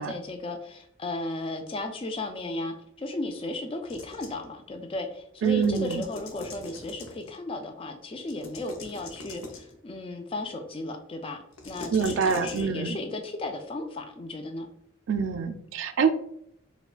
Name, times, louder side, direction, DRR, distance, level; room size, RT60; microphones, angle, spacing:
voice 1, 0.0-14.7, left 2 dB, 25° left, 6 dB, 0.3 m, -35 dB
sound 1, 3.8-4.5 5.4-7.4 8.2-9.7 11.5-12.6, left 2 dB, 85° left, 0.6 m, -42 dB
voice 2, 5.4-6.0 11.9-13.0 15.1-16.1, right 6 dB, 65° right, 8 dB, 0.3 m, -25 dB
4.6 x 2.2 x 2.4 m, 0.73 s
head